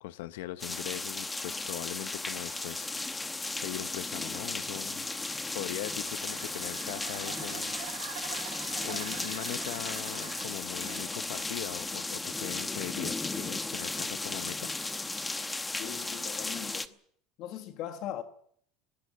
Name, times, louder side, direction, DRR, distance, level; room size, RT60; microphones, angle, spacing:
voice 1, 0.0-2.9 3.6-5.1 5.5-7.7 8.8-14.7, left 15 dB, 90° left, 0.8 m, -40 dB
sound 1, 0.6-16.9, left 3 dB, 10° left, 0.9 m, -35 dB
sound 2, 5.8-11.9, right 18 dB, 85° right, 1.1 m, -46 dB
voice 2, 15.8-16.9 17.4-18.2, left 11 dB, 50° left, 1.4 m, -40 dB
20.5 x 18.5 x 7.6 m
cardioid pair, 160°, 0 cm